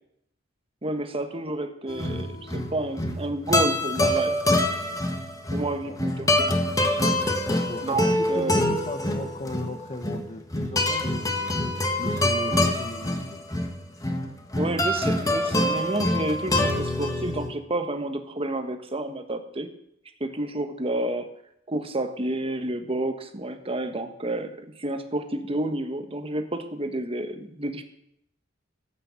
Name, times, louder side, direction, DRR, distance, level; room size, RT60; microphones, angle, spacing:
voice 1, 0.8-4.3 5.5-6.3 7.8-8.6 14.6-19.7 20.2-21.3 21.7-27.8, right 1 dB, 30° right, 7 dB, 1.4 m, -30 dB
sound 1, 1.9-17.5, left 1 dB, 20° left, 1.6 m, -25 dB
voice 2, 5.8-6.4 7.5-11.5 12.0-13.4, left 2 dB, 35° left, 5 dB, 1.1 m, -37 dB
14.5 x 8.9 x 7.2 m, 0.76 s
head